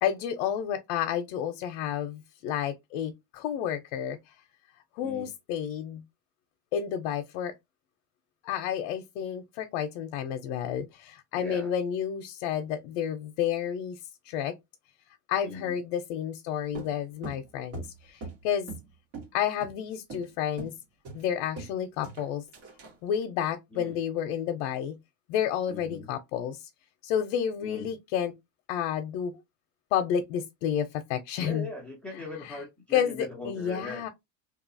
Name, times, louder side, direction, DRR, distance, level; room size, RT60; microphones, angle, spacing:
voice 1, 0.0-4.3 4.9-6.0 6.7-7.5 8.4-14.0 14.2-14.5 15.3-18.7 19.3-20.7 21.1-22.4 23.0-25.0 25.3-26.7 27.0-28.3 28.7-29.4 29.9-31.7 32.4-32.6 32.9-34.1, left 9 dB, 80° left, 0.5 m, -30 dB
voice 2, 11.4-11.7 15.4-15.8 23.7-24.0 25.7-26.1 27.6-27.9 31.4-34.1, left 2 dB, 5° left, 0.3 m, -40 dB
sound 1, 16.7-18.9 19.1-19.3 19.6-19.8 20.1-20.3 20.6-20.8 21.0-21.8 22.0-23.0, right 4 dB, 90° right, 1.6 m, -41 dB
2.7 x 2.3 x 2.5 m
cardioid pair, 175°, 36 cm